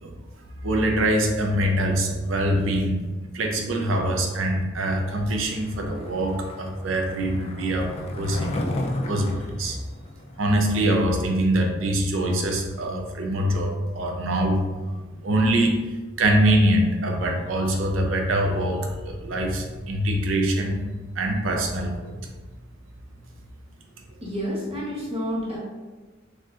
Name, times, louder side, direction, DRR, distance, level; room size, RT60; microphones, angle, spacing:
voice 1, 0.6-3.0 3.3-8.7 9.1-9.8 10.4-15.8 16.2-20.8 21.2-22.1, right 1 dB, 85° right, 2 dB, 0.5 m, -24 dB
Skateboard, 5.3-10.8, left 1 dB, 30° left, 0.4 m, -34 dB
voice 2, 24.2-25.6, equal, 30° right, -7 dB, 0.9 m, -29 dB
4.1 x 2.4 x 2.4 m, 1.3 s
head